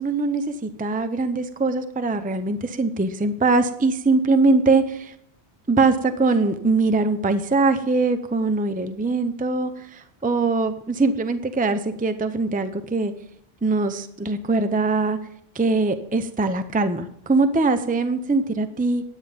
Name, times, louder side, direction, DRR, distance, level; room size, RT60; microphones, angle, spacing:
voice 1, 0.0-5.1 5.7-13.1 13.6-15.2 15.5-19.0, right 3 dB, 10° right, 10 dB, 0.6 m, -22 dB
10.5 x 9.2 x 5.1 m, 0.69 s
omnidirectional pair, 1.1 m